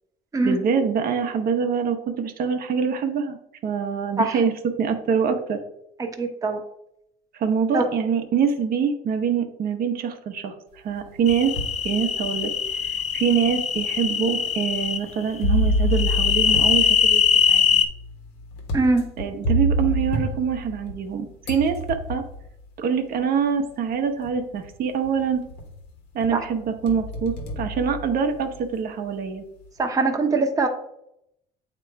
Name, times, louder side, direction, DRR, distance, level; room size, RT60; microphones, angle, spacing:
voice 1, 0.4-3.4 3.6-4.5 4.8-5.6 7.3-11.5 11.8-12.5 12.8-17.9 19.2-22.2 22.8-25.4 26.1-29.4, right 6 dB, 60° right, 5 dB, 0.8 m, -25 dB
voice 2, 6.0-6.6 7.7-7.9 18.7-19.0 26.3-26.4 29.8-30.7, right 3 dB, 20° right, 3 dB, 0.8 m, -22 dB
sound 1, 10.9-11.8 12.4-12.5 13.4-13.5 15.4-21.1 21.4-22.5 23.6-23.7 24.2-24.7 25.0-25.8 26.2-28.6, equal, 85° left, 1.3 m, -27 dB
sound 2, 11.3-15.0 15.9-17.8, left 7 dB, 40° left, 0.7 m, -22 dB
8.2 x 3.0 x 4.5 m, 0.78 s
cardioid pair, 110°, 17 cm